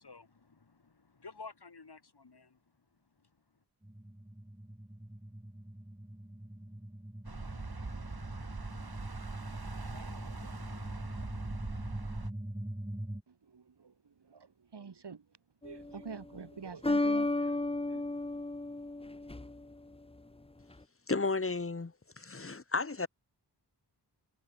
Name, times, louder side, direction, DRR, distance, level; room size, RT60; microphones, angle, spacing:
voice 1, 0.0-2.6 3.2-3.3, left 4 dB, 70° left, 3.6 m, -52 dB
sound 1, 3.8-13.2, right 1 dB, 10° right, 2.2 m, -43 dB
sound 2, 7.2-12.3, right 3 dB, 65° right, 4.8 m, -42 dB
voice 2, 13.3-15.3 15.6-18.2, right 5 dB, 80° right, 1.7 m, -47 dB
sound 3, 15.6-16.1 16.8-19.7, left 2 dB, 15° left, 0.8 m, -33 dB
voice 3, 21.1-23.1, left 3 dB, 35° left, 1.1 m, -33 dB
wide cardioid pair, 50°, 40 cm